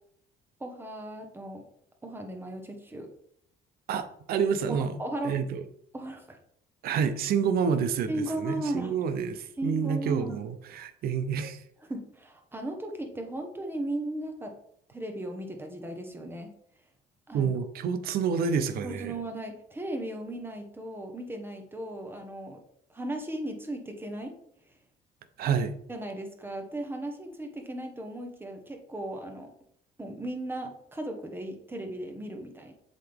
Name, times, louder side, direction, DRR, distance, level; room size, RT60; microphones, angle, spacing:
voice 1, 0.6-1.7 2.0-3.1 4.7-5.4 5.9-6.4 8.1-8.9 9.6-10.4 11.9-14.5 14.9-16.5 17.3-17.5 18.8-22.6 22.9-24.4 25.9-29.5 30.0-32.7, right 1 dB, 15° right, 3 dB, 1.2 m, -36 dB
voice 2, 3.9-5.0 5.2-5.6 6.8-11.6 17.3-19.2 25.4-25.7, right 6 dB, 65° right, 9 dB, 0.7 m, -28 dB
7.3 x 4.0 x 3.5 m, 0.68 s
cardioid pair, 110°, 17 cm